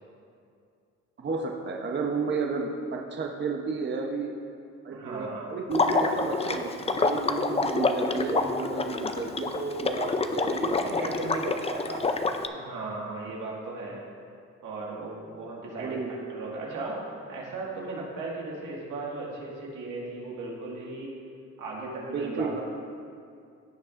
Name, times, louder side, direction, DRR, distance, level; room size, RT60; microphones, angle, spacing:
voice 1, 1.2-4.3 4.8-12.0 15.8-16.1 22.1-22.6, right 4 dB, 35° right, 0 dB, 0.9 m, -32 dB
voice 2, 4.9-5.5 12.5-14.0 14.6-21.2 21.6-22.6, right 3 dB, 85° right, -4 dB, 2.0 m, -37 dB
Water / Liquid, 5.7-12.5, left 3 dB, 20° left, 0.5 m, -27 dB
16.0 x 6.4 x 2.6 m, 2.4 s
cardioid pair, 90°, 30 cm